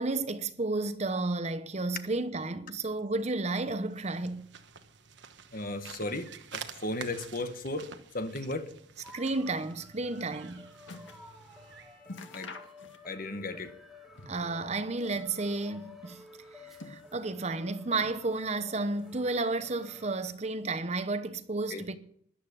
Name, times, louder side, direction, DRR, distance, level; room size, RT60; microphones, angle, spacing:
voice 1, 0.0-4.5 9.1-10.7 14.3-16.2 16.6-22.0, right 3 dB, 35° right, 0.9 m, -32 dB
sound 1, 3.7-12.0, right 6 dB, 65° right, 1.2 m, -48 dB
voice 2, 5.5-8.7 12.3-12.5 13.0-13.7 21.7-21.8, left 2 dB, 45° left, 1.5 m, -35 dB
sound 2, 9.0-20.3, left 2 dB, ahead, 2.5 m, -53 dB
sound 3, 10.1-11.3 11.6-11.7 12.0-13.3 13.6-14.6 14.9-15.8 16.4-17.4 17.9-18.6 18.9-19.7 20.4-20.5, left 3 dB, 75° left, 1.9 m, -49 dB
13.0 x 11.0 x 6.9 m
head